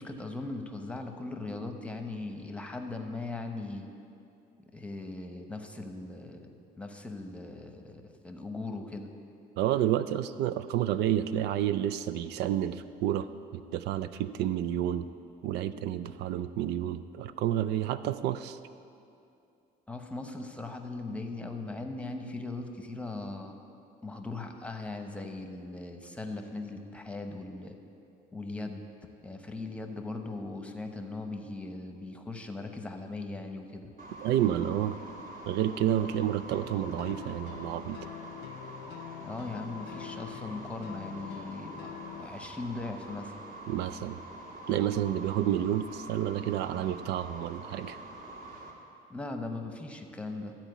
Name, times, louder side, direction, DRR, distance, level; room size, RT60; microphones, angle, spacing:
voice 1, 0.0-3.9 4.7-6.5 6.8-9.1 19.9-23.6 24.0-27.8 28.3-28.8 29.2-33.9 39.2-43.4 49.1-50.5, left 2 dB, 5° left, 4 dB, 0.9 m, -39 dB
voice 2, 9.6-13.3 13.5-15.1 15.4-18.6 34.2-35.0 35.5-38.0 43.7-44.2 44.7-48.0, right 11 dB, 80° right, 13 dB, 0.4 m, -30 dB
sound 1, 34.0-48.7, right 1 dB, 45° right, 1.6 m, -45 dB
sound 2, 36.5-42.3, left 13 dB, 80° left, 0.4 m, -45 dB
13.0 x 4.5 x 8.0 m, 2.6 s
cardioid pair, 110°, 17 cm